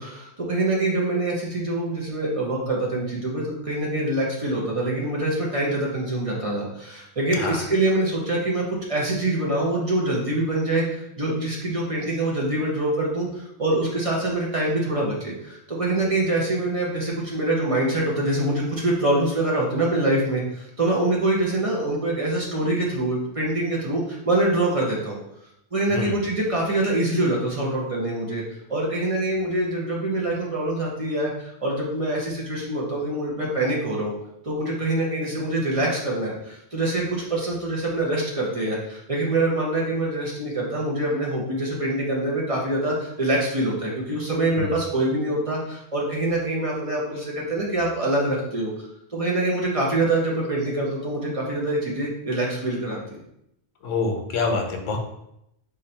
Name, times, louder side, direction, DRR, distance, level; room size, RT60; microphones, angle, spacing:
voice 1, 0.0-8.6 8.9-25.2 25.7-28.4 28.7-34.1 34.4-48.7 49.1-53.2, right 1 dB, 30° right, -3 dB, 0.8 m, -25 dB
voice 2, 53.8-55.0, left 3 dB, 90° left, 4 dB, 1.1 m, -26 dB
4.0 x 2.6 x 4.3 m, 0.79 s
omnidirectional pair, 1.3 m